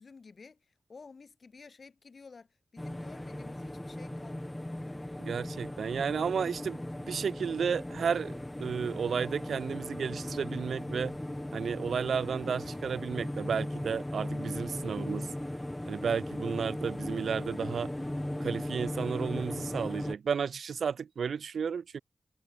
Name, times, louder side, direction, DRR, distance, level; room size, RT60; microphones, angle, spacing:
voice 1, 0.0-4.7, left 4 dB, 45° left, 7.2 m, -53 dB
sound 1, 2.8-20.2, left 1 dB, 10° left, 1.5 m, -37 dB
voice 2, 5.2-8.3 8.6-11.2 11.5-15.3 15.9-17.9 18.4-22.0, right 6 dB, 80° right, 0.4 m, -33 dB
wide cardioid pair, 170°, 0 cm